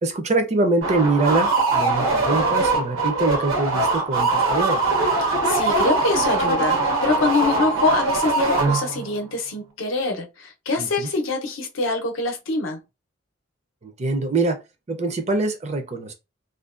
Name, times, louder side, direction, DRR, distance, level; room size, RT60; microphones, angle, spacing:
voice 1, 0.0-4.8 10.8-11.1 13.8-14.6 14.9-16.1, right 2 dB, 35° right, 0.4 m, -24 dB
sound 1, 0.8-9.1, right 3 dB, 75° right, 0.8 m, -22 dB
voice 2, 5.2-12.8, left 3 dB, 80° left, 0.6 m, -24 dB
2.5 x 2.1 x 2.4 m
head